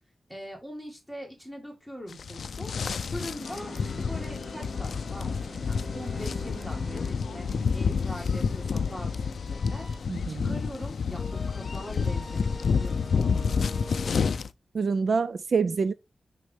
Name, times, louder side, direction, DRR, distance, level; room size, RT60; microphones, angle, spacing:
voice 1, 0.3-2.7 3.1-7.5 7.7-14.1, equal, ahead, 2.1 m, -42 dB
sound 1, 2.1-14.5, left 5 dB, 90° left, 0.4 m, -29 dB
sound 2, 3.4-10.0, equal, 25° right, 1.9 m, -44 dB
voice 2, 10.1-10.6 14.7-15.9, right 5 dB, 60° right, 0.4 m, -26 dB
sound 3, 11.2-14.4, left 1 dB, 25° left, 1.3 m, -43 dB
6.3 x 5.4 x 3.4 m
wide cardioid pair, 160°, 0 cm